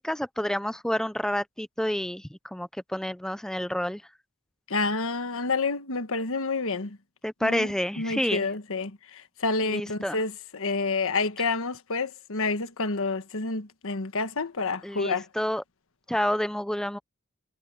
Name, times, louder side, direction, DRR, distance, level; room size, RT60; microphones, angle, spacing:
voice 1, 0.0-4.0 7.2-8.5 9.7-10.2 14.8-15.6 16.1-17.0, equal, 5° left, 0.5 m, -29 dB
voice 2, 4.7-7.0 7.4-15.3, left 3 dB, 65° left, 1.5 m, -29 dB
head